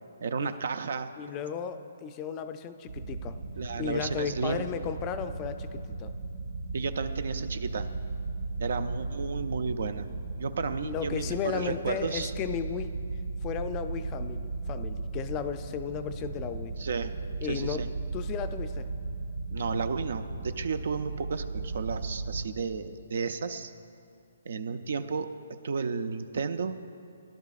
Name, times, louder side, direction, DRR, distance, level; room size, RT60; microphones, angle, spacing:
voice 1, 0.2-1.1 3.6-4.6 6.7-7.9 8.6-10.1 10.4-12.3 16.8-17.1 17.4-17.9 19.5-23.7 24.5-26.8, right 5 dB, 65° right, 11 dB, 0.5 m, -33 dB
voice 2, 1.2-3.4 3.8-6.1 10.8-13.0 13.4-16.7 17.4-17.9 18.1-18.9, left 8 dB, 25° left, 9 dB, 0.4 m, -35 dB
sound 1, 2.9-22.5, right 3 dB, 85° right, 1.7 m, -36 dB
16.5 x 11.0 x 2.4 m, 2.5 s
hypercardioid pair, 145°, 0 cm